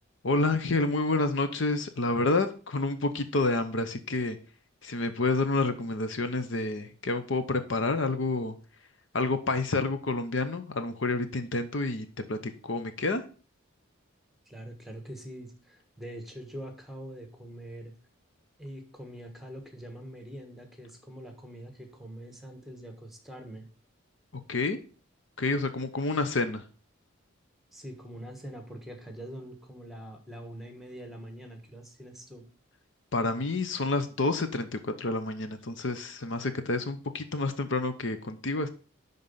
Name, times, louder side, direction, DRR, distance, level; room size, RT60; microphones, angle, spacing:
voice 1, 0.2-4.4 4.8-8.6 9.1-13.2 24.5-24.8 25.4-26.6 33.1-38.7, left 3 dB, 60° left, 9 dB, 0.8 m, -29 dB
voice 2, 14.5-17.9 18.6-23.7 27.7-32.5, right 1 dB, ahead, 5 dB, 1.4 m, -44 dB
11.0 x 4.0 x 5.5 m, 0.39 s
head